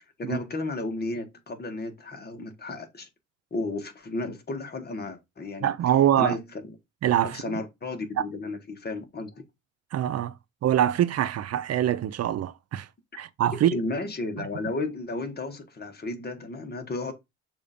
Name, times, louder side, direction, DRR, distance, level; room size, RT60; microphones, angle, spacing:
voice 1, 0.2-3.1 3.5-5.7 6.1-6.7 7.2-9.4 13.7-17.1, left 2 dB, 30° left, 1.5 m, -33 dB
voice 2, 5.6-6.4 7.0-7.5 9.9-10.3 10.6-12.9 13.1-13.8, right 11 dB, 55° right, 0.5 m, -24 dB
6.7 x 2.8 x 5.1 m
cardioid pair, 90°, 30 cm